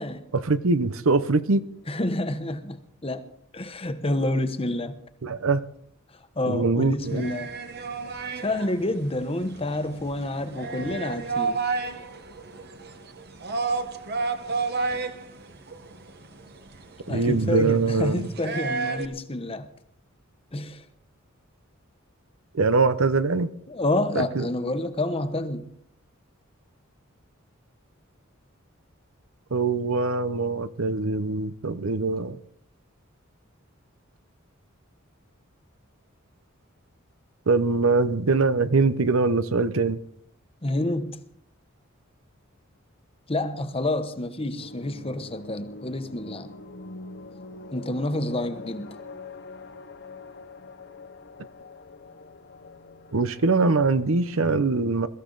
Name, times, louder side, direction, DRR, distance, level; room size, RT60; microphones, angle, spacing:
voice 1, 0.3-1.7 5.2-5.6 6.5-7.3 17.1-18.3 22.5-23.5 24.1-24.5 29.5-32.4 37.5-40.0 53.1-55.1, right 3 dB, 75° right, 0.8 m, -23 dB
voice 2, 1.9-3.2 3.5-4.9 6.4-7.5 8.4-11.6 17.1-19.7 20.5-20.8 23.7-25.7 40.6-41.2 43.3-46.5 47.7-48.9, left 1 dB, 25° left, 1.1 m, -28 dB
sound 1, 7.0-19.0, right 4 dB, 50° right, 1.3 m, -32 dB
sound 2, 44.6-54.4, left 3 dB, 55° left, 0.9 m, -44 dB
22.5 x 13.5 x 4.0 m
head